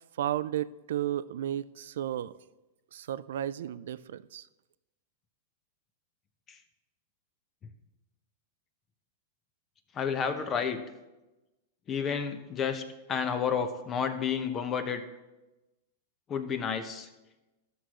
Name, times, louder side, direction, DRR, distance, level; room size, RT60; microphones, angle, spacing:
voice 1, 0.2-2.3 2.9-4.5, right 11 dB, 75° right, 16 dB, 0.3 m, -33 dB
voice 2, 9.9-10.8 11.9-12.8 13.1-15.0 16.3-17.1, left 7 dB, 30° left, 9 dB, 0.8 m, -30 dB
12.5 x 6.3 x 3.0 m, 1.0 s
hypercardioid pair, 120°, 0 cm